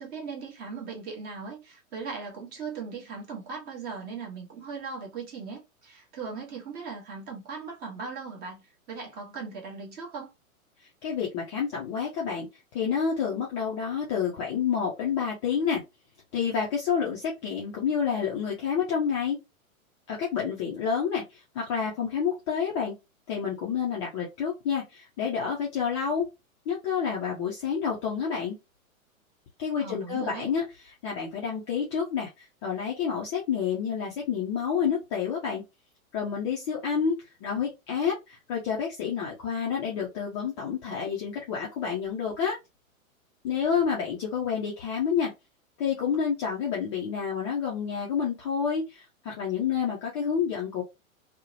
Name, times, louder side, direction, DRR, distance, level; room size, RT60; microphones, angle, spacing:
voice 1, 0.0-10.3 29.8-30.5, right 5 dB, 25° right, 0.9 m, -39 dB
voice 2, 11.0-12.5 12.7-15.8 16.3-19.4 20.1-22.9 23.3-26.2 26.7-28.6 29.6-30.7 31.0-35.6 36.1-42.6 43.4-45.3 45.8-50.8, left 7 dB, 20° left, 0.4 m, -29 dB
2.7 x 2.1 x 2.5 m
figure-of-eight pair, 110°, 42 cm